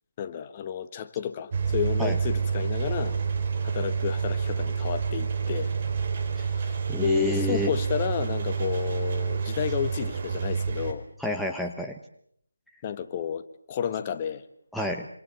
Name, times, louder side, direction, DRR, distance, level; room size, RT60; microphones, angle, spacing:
voice 1, 0.2-3.2 3.6-5.7 6.4-11.1 12.8-14.4, left 8 dB, 25° left, 10 dB, 1.4 m, -31 dB
Engine, 1.5-10.9, right 6 dB, 35° right, 3.9 m, -28 dB
voice 2, 6.9-7.7 11.2-12.0 14.7-15.1, equal, ahead, 1 dB, 1.1 m, -29 dB
26.5 x 26.0 x 7.1 m, 0.68 s
figure-of-eight pair, 160°, 0 cm